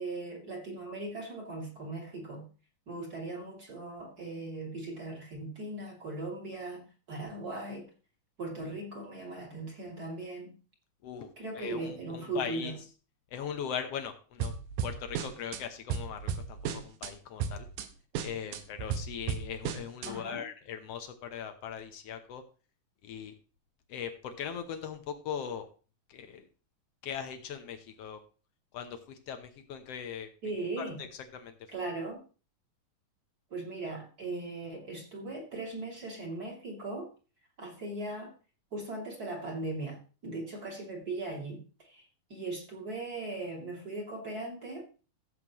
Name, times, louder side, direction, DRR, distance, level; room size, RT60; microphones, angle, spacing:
voice 1, 0.0-2.5 2.9-7.9 8.4-10.6 11.4-12.7 20.1-20.5 30.4-31.0 31.7-32.2 33.5-37.1 37.6-38.3 38.7-44.8, right 2 dB, 30° right, -2 dB, 3.0 m, -39 dB
voice 2, 11.5-12.7 13.3-14.5 14.8-17.7 18.2-22.4 23.0-23.3 23.9-25.7 26.1-26.4 27.0-28.2 28.7-30.3 30.8-31.1 31.3-31.5, left 8 dB, 70° left, 7 dB, 1.5 m, -39 dB
sound 1, 14.4-15.6 15.9-17.1 17.4-17.9 18.1-20.1, right 7 dB, 80° right, 2.6 m, -34 dB
16.0 x 7.7 x 3.0 m, 0.36 s
omnidirectional pair, 3.9 m